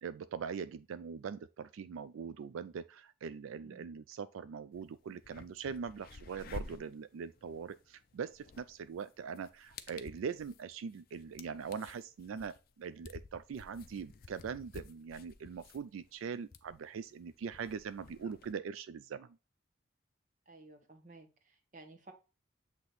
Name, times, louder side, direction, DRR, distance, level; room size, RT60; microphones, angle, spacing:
voice 1, 0.0-19.3, right 6 dB, 85° right, 0.3 m, -42 dB
voice 2, 3.6-3.9 20.5-22.1, right 2 dB, 40° right, 1.0 m, -55 dB
sound 1, 4.7-4.8 5.2-18.5, left 4 dB, 45° left, 0.5 m, -52 dB
7.9 x 2.9 x 4.0 m
head